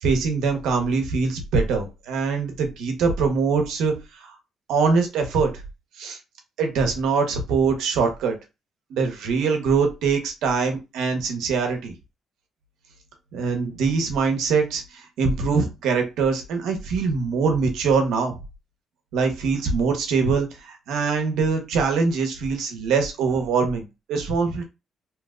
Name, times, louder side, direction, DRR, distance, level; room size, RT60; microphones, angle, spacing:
voice 1, 0.0-3.9 4.7-5.5 6.0-6.2 6.6-8.3 8.9-11.9 13.3-14.8 15.2-18.3 19.1-24.6, right 5 dB, 85° right, 5 dB, 0.9 m, -23 dB
3.0 x 2.1 x 3.6 m, 0.26 s
cardioid pair, 90°, 0 cm